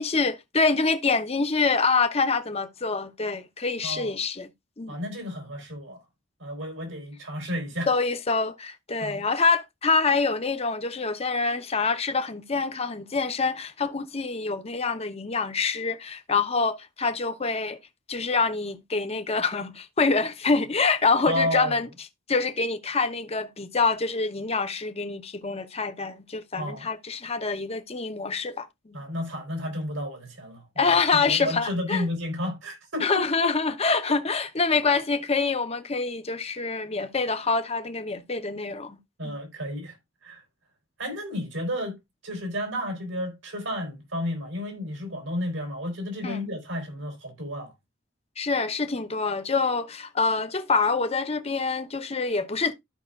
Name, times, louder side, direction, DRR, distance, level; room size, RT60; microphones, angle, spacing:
voice 1, 0.0-4.5 4.8-5.0 7.9-17.8 18.1-21.9 22.3-29.0 30.8-32.1 33.0-39.0 39.2-39.3 46.2-46.5 48.4-52.7, left 4 dB, 30° left, 0.8 m, -26 dB
voice 2, 3.8-4.1 4.9-6.0 6.4-7.9 9.0-9.2 21.3-21.7 26.6-26.9 28.9-33.5 39.2-40.0 40.2-40.4 41.0-42.0 42.2-47.7, left 1 dB, 85° right, 4.2 m, -32 dB
13.5 x 5.6 x 2.4 m
head